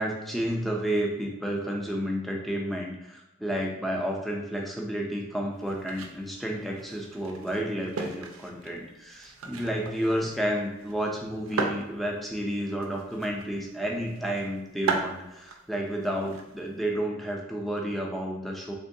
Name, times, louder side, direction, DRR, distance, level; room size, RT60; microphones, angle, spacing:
voice 1, 0.0-18.7, equal, ahead, 0 dB, 0.4 m, -31 dB
sound 1, 5.5-16.9, right 4 dB, 85° right, 0.4 m, -38 dB
3.5 x 3.0 x 2.6 m, 0.93 s
head